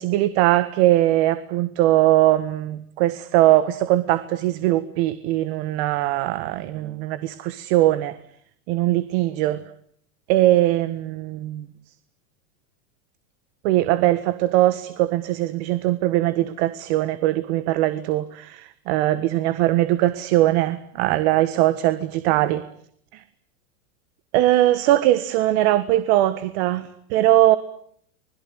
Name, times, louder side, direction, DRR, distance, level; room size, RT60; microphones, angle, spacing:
voice 1, 0.0-8.2 8.7-9.7 10.3-11.7 13.6-22.6 23.1-23.2 24.3-27.6, right 15 dB, 50° right, 13 dB, 1.6 m, -20 dB
26.0 x 21.0 x 9.9 m, 0.66 s
supercardioid pair, 155°, 42 cm